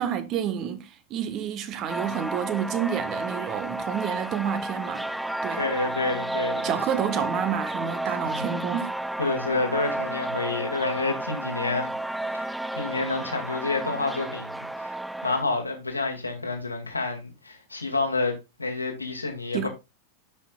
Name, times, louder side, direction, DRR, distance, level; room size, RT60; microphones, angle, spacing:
voice 1, 0.0-5.1 5.4-5.6 6.6-8.9 19.5-19.7, right 9 dB, 35° right, 1.2 m, -29 dB
sound 1, 1.9-15.4, right 1 dB, ahead, 0.4 m, -32 dB
voice 2, 5.6-6.7 8.2-8.5 9.2-11.9 12.3-15.0 15.2-19.7, left 3 dB, 80° left, 2.1 m, -29 dB
11.0 x 6.1 x 2.4 m
figure-of-eight pair, 90°, 0 cm